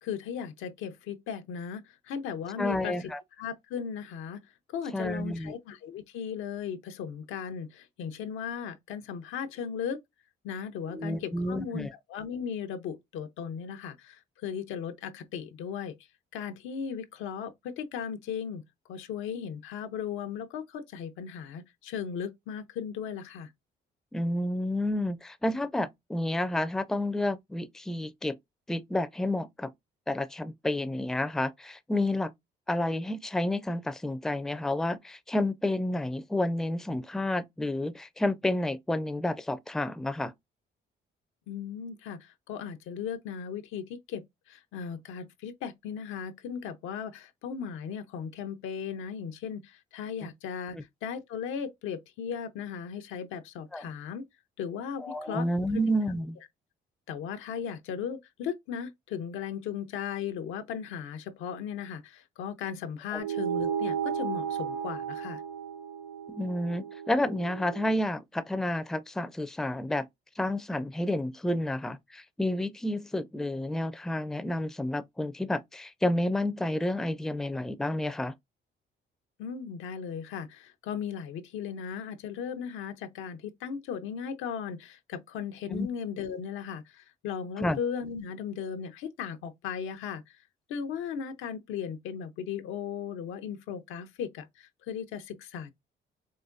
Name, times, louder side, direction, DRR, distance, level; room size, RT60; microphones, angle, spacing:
voice 1, 0.0-3.1 3.4-4.4 4.7-10.0 10.4-16.0 16.3-18.6 18.9-23.5 41.5-50.8 51.0-54.3 54.6-55.5 57.1-65.4 79.4-90.4 90.7-95.7, left 7 dB, 90° left, 0.7 m, -37 dB
voice 2, 2.6-3.2 4.9-5.5 10.9-11.9 24.1-28.4 28.7-29.7 30.1-32.3 32.7-40.3 53.7-53.9 55.0-56.4 63.1-63.2 66.3-70.1 70.4-78.3 85.7-85.9 87.6-87.8, left 1 dB, ahead, 0.4 m, -30 dB
sound 1, 63.2-68.0, right 7 dB, 70° right, 0.8 m, -34 dB
4.7 x 2.2 x 2.5 m
cardioid pair, 90°, 20 cm